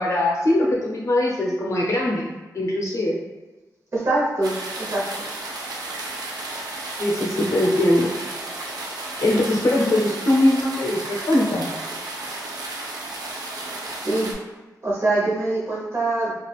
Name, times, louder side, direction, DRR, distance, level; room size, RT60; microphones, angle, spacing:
voice 1, 0.0-3.2 7.0-8.1 9.2-11.7, left 1 dB, 50° left, -3 dB, 0.6 m, -21 dB
voice 2, 3.9-5.3 14.0-14.3 14.8-16.3, right 2 dB, 45° right, -5 dB, 0.8 m, -24 dB
sound 1, 4.4-14.3, right 2 dB, 80° right, 0.4 m, -33 dB
3.2 x 2.4 x 2.3 m, 1.2 s
wide cardioid pair, 160°, 7 cm